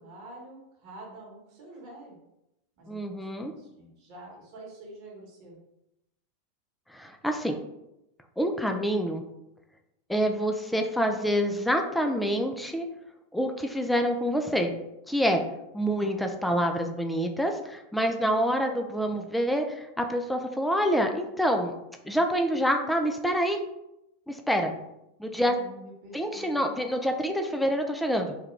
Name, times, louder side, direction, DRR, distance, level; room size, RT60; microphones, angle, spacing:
voice 1, 0.0-2.2 2.8-5.6 25.4-26.7, right 1 dB, 50° right, -2 dB, 1.1 m, -47 dB
voice 2, 2.9-3.5 6.9-7.6 8.4-9.2 10.1-12.8 13.3-14.7 15.1-15.4 15.7-21.7 22.1-23.6 24.3-24.7 25.2-25.6 26.1-28.3, equal, 5° left, 4 dB, 0.3 m, -27 dB
3.3 x 2.3 x 3.1 m, 0.87 s
figure-of-eight pair, 85°, 0 cm